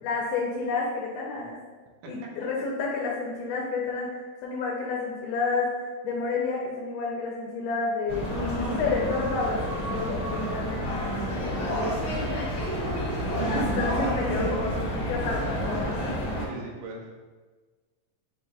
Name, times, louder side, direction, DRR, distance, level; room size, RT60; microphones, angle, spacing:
voice 1, 0.0-1.6 2.1-5.7 6.0-8.3 8.6-11.7 13.6-15.9, left 4 dB, 85° left, -3 dB, 2.1 m, -30 dB
sound 1, 8.1-16.4, equal, 45° left, 1.7 m, -29 dB
voice 2, 12.6-13.3 16.4-17.1, right 3 dB, 85° right, -1 dB, 2.3 m, -41 dB
5.6 x 2.3 x 3.8 m, 1.4 s
omnidirectional pair, 3.6 m